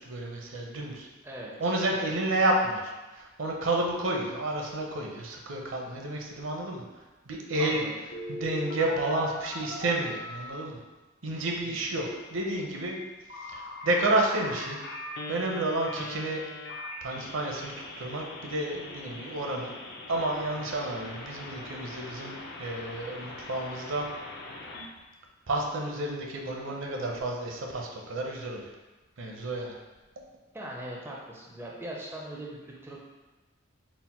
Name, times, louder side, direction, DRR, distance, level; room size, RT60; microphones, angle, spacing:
voice 1, 0.0-1.1 1.6-6.8 7.3-7.8 8.3-10.8 11.2-12.0 12.3-13.0 13.4-14.8 15.3-16.4 17.0-19.7 20.1-24.1 25.5-28.7 29.2-29.8, right 2 dB, 65° right, 1 dB, 0.6 m, -30 dB
voice 2, 1.2-1.5 1.9-2.1 7.6-7.9 11.6-11.8 30.5-33.0, right 1 dB, 10° right, -3 dB, 0.4 m, -40 dB
Telephone, 8.1-10.6 12.0-24.9, left 2 dB, 50° left, 0.5 m, -41 dB
4.1 x 2.1 x 4.2 m, 1.1 s
head